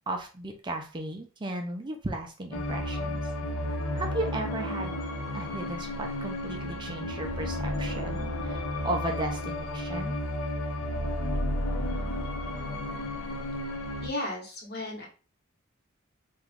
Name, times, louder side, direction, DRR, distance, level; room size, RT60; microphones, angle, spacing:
voice 1, 0.1-3.3 3.6-5.0 5.3-10.2, right 1 dB, 25° right, 3 dB, 0.4 m, -35 dB
sound 1, 2.5-14.1, left 1 dB, 90° left, 0.7 m, -32 dB
voice 2, 14.0-15.1, left 1 dB, 50° left, -2 dB, 1.1 m, -34 dB
2.9 x 2.3 x 3.4 m, 0.36 s
head